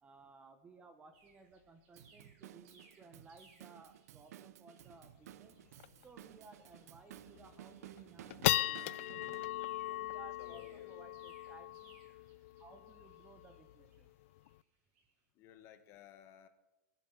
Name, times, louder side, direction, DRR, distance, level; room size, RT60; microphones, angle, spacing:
voice 1, 0.0-5.5 6.0-9.0 9.9-12.0 12.6-14.1, right 4 dB, 15° right, 9 dB, 0.9 m, -59 dB
sound 1, 1.1-15.1, right 3 dB, 45° right, 6.8 m, -69 dB
Drum kit / Drum, 2.0-9.5, right 12 dB, 65° right, 0.6 m, -55 dB
sound 2, 4.9-5.0 5.3-5.4 5.8-6.0 6.5-6.6 7.2-7.5 8.0-14.6, left 17 dB, 50° left, 0.5 m, -38 dB
voice 2, 10.4-11.0 15.3-16.5, left 10 dB, 30° left, 9 dB, 1.5 m, -57 dB
17.5 x 11.0 x 5.9 m, 1.1 s
supercardioid pair, 155°, 9 cm